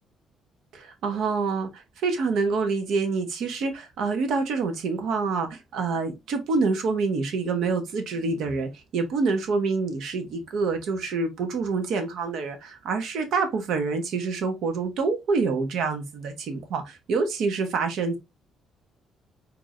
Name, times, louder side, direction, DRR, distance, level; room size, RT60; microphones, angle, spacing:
voice 1, 0.7-1.7 2.0-18.2, right 4 dB, 75° right, 1.1 m, -27 dB
4.5 x 2.9 x 2.5 m
cardioid pair, 130°, 0 cm